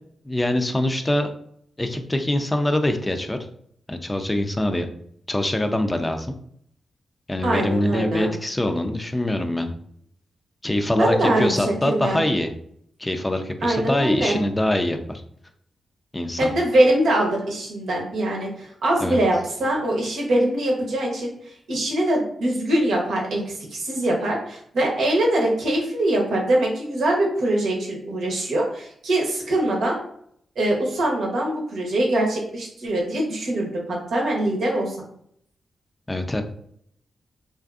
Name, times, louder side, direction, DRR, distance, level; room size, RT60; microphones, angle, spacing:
voice 1, 0.3-1.3 1.8-3.4 3.9-4.9 5.3-6.3 7.3-9.7 10.6-12.5 13.0-15.2 16.1-16.5 19.0-19.2 36.1-36.4, left 1 dB, 20° left, 6 dB, 0.4 m, -24 dB
voice 2, 7.4-8.3 11.0-12.2 13.6-14.4 16.4-30.0 30.6-35.0, right 1 dB, 80° right, -1 dB, 0.7 m, -23 dB
2.5 x 2.5 x 2.4 m, 0.67 s
supercardioid pair, 45°, 0 cm